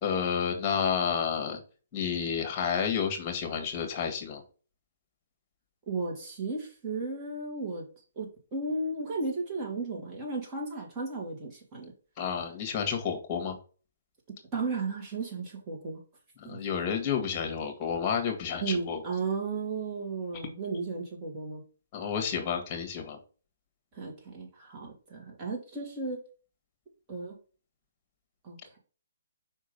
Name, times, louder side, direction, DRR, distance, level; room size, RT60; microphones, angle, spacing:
voice 1, 0.0-1.6 1.9-4.4 12.2-13.6 16.4-19.0 21.9-23.2, left 7 dB, 30° left, 5 dB, 1.8 m, -30 dB
voice 2, 5.9-7.8 8.2-11.9 14.5-16.0 16.4-16.6 18.6-21.6 23.9-26.2 27.1-27.4 28.4-28.8, right 3 dB, 25° right, -2 dB, 2.5 m, -34 dB
5.3 x 3.7 x 5.2 m, 0.37 s
hypercardioid pair, 145°, 0 cm